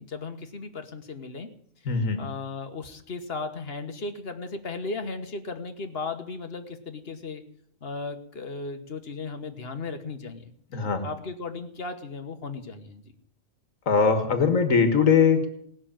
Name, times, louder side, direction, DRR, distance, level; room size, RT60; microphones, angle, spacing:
voice 1, 0.0-1.5 2.2-7.4 7.8-10.5 11.0-13.0, left 3 dB, 50° left, 7 dB, 1.4 m, -36 dB
voice 2, 1.9-2.2 10.7-11.1 13.9-15.5, left 5 dB, 70° left, 7 dB, 1.9 m, -21 dB
18.5 x 6.3 x 8.9 m, 0.67 s
omnidirectional pair, 1.4 m